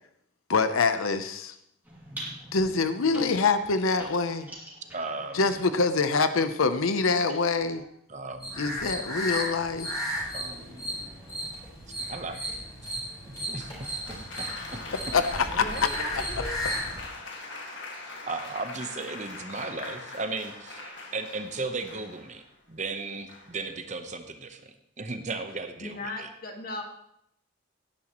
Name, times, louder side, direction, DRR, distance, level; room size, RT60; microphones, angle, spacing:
voice 1, 0.5-1.6 2.5-4.5 5.3-7.8 8.6-9.9 15.1-16.0, left 4 dB, 85° left, 10 dB, 0.7 m, -25 dB
sound 1, 1.8-7.9 8.8-11.5, right 1 dB, 10° right, 2.5 m, -47 dB
voice 2, 4.9-5.6 8.1-8.9 10.3-11.1 11.9-12.4 13.3-14.8 18.2-26.3, right 3 dB, 35° right, 7 dB, 0.9 m, -36 dB
sound 2, 8.4-17.0, equal, 20° left, 4.7 m, -35 dB
Applause, 13.6-22.5 23.3-23.7, left 3 dB, 60° left, 1.9 m, -41 dB
voice 3, 15.5-16.6 25.8-26.8, left 2 dB, 45° left, 2 dB, 1.8 m, -37 dB
17.0 x 10.0 x 3.0 m, 0.75 s
head